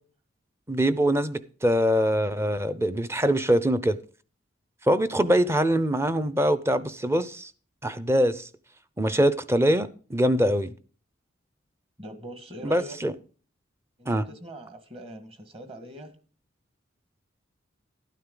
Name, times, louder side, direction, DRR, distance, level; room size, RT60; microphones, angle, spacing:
voice 1, 0.7-4.0 4.9-7.5 7.8-8.5 9.0-10.7 12.6-13.1 14.1-14.2, equal, 15° right, 0.6 m, -23 dB
voice 2, 12.0-13.0 14.0-16.1, right 1 dB, 30° right, 1.7 m, -42 dB
12.5 x 9.2 x 3.8 m
head